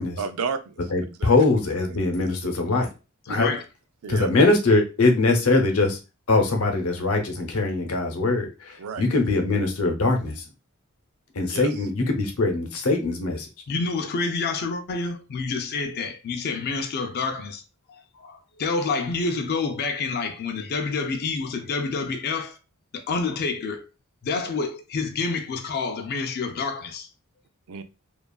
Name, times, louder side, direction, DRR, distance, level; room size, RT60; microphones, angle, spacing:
voice 1, 0.2-0.8 1.2-1.3 2.2-2.3 3.3-3.4 4.0-4.3 8.8-9.0 11.5-11.7 27.7-27.8, right 5 dB, 75° right, 0.4 m, -31 dB
voice 2, 0.9-2.9 3.3-3.5 4.1-6.0 6.3-10.4 11.3-13.5, left 3 dB, 80° left, 0.7 m, -22 dB
voice 3, 3.3-3.6 13.7-17.6 17.9-22.6 22.9-23.9 24.2-27.1, left 4 dB, 50° left, 0.4 m, -28 dB
2.8 x 2.3 x 2.3 m
head